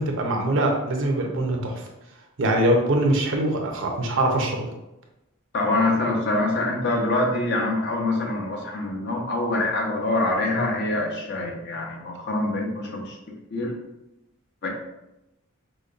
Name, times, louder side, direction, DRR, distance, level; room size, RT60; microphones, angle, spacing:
voice 1, 0.0-1.8 2.4-4.7, right 1 dB, 60° right, 2 dB, 0.6 m, -23 dB
voice 2, 5.5-13.2 13.5-13.8 14.6-14.7, left 2 dB, 50° left, 0 dB, 0.7 m, -25 dB
5.0 x 2.2 x 2.5 m, 0.91 s
head